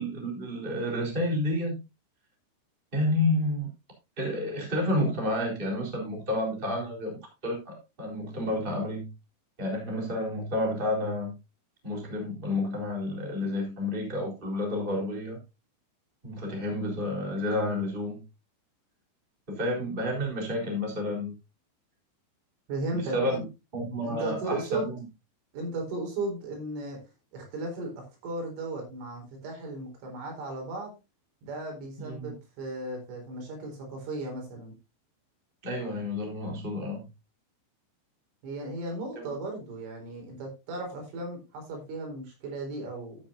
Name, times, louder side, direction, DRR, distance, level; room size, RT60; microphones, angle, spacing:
voice 1, 0.0-1.8 2.9-3.7 4.2-9.1 9.6-11.3 11.8-15.4 16.2-18.2 19.5-21.3 22.9-23.4 23.7-25.0 32.0-32.3 35.6-37.0, left 1 dB, 10° right, 0 dB, 3.4 m, -30 dB
voice 2, 22.7-23.5 24.0-24.9 25.5-27.1 27.3-30.9 31.4-34.8 38.4-43.2, right 2 dB, 75° right, 1 dB, 6.6 m, -36 dB
13.5 x 8.8 x 2.7 m, 0.25 s
omnidirectional pair, 5.7 m